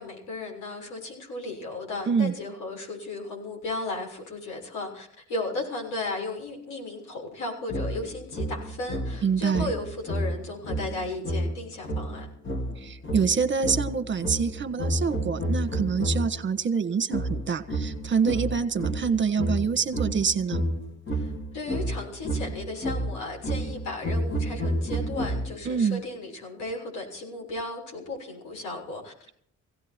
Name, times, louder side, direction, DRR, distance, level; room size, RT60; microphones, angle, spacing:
voice 1, 0.0-12.3 21.1-29.3, left 2 dB, 85° left, 0 dB, 6.7 m, -35 dB
sound 1, 7.7-16.4 17.1-25.8, right 1 dB, 40° left, 2.7 m, -30 dB
voice 2, 9.2-9.7 12.8-20.6 25.6-26.0, right 6 dB, 40° right, 10 dB, 1.4 m, -26 dB
17.0 x 17.0 x 4.5 m, 0.67 s
cardioid pair, 90°, 30 cm